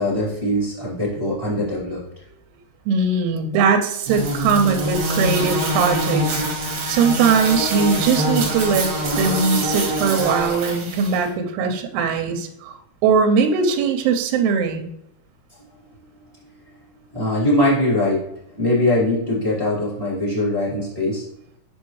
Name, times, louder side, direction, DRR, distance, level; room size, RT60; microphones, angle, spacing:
voice 1, 0.0-2.0 15.6-21.2, left 1 dB, 20° right, -8 dB, 0.9 m, -22 dB
voice 2, 2.9-8.9 9.2-12.7 13.0-14.9, right 5 dB, 80° right, 4 dB, 2.7 m, -20 dB
sound 1, 4.1-11.2, equal, 55° right, 2.7 m, -24 dB
7.0 x 5.3 x 3.1 m, 0.76 s
omnidirectional pair, 4.7 m